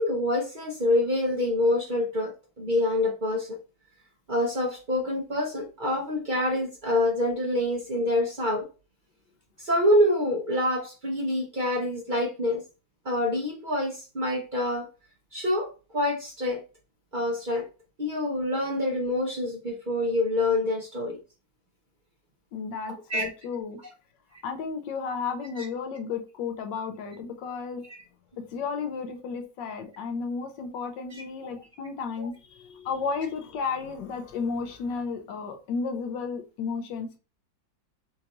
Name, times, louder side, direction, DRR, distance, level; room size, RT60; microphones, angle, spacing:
voice 1, 0.0-3.6 4.3-8.7 9.6-12.6 13.0-14.9 15.3-16.6 17.1-17.7 18.0-21.2 23.1-23.3 25.6-25.7 31.1-31.2 32.2-32.3, left 1 dB, 55° right, 0 dB, 0.5 m, -26 dB
voice 2, 22.5-23.8 24.4-27.8 28.5-37.2, left 5 dB, 75° left, 6 dB, 1.4 m, -33 dB
5.8 x 2.5 x 2.9 m, 0.33 s
omnidirectional pair, 2.0 m